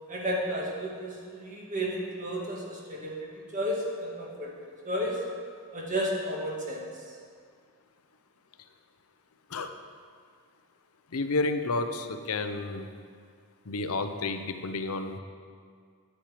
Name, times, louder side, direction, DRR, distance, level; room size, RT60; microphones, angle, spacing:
voice 1, 0.1-4.5 4.8-5.2 5.7-7.1, equal, 35° right, -2 dB, 1.8 m, -33 dB
voice 2, 11.1-12.9 13.6-15.2, left 3 dB, 85° left, 7 dB, 0.7 m, -31 dB
10.0 x 8.9 x 4.9 m, 2.1 s
head